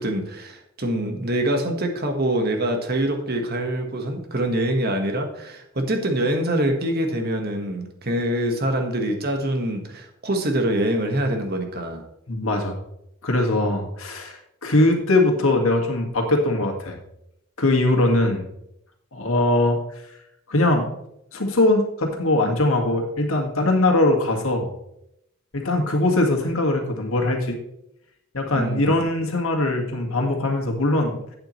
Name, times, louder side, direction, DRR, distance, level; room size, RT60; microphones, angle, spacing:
voice 1, 0.0-12.0 28.5-28.9, right 1 dB, 45° right, 4 dB, 1.5 m, -25 dB
voice 2, 12.3-12.8 13.2-17.0 17.6-18.4 19.1-20.0 20.5-20.9 21.3-24.7 25.5-27.6 28.3-31.3, left 2 dB, 70° left, 2 dB, 1.9 m, -21 dB
11.5 x 8.7 x 3.2 m, 0.79 s
head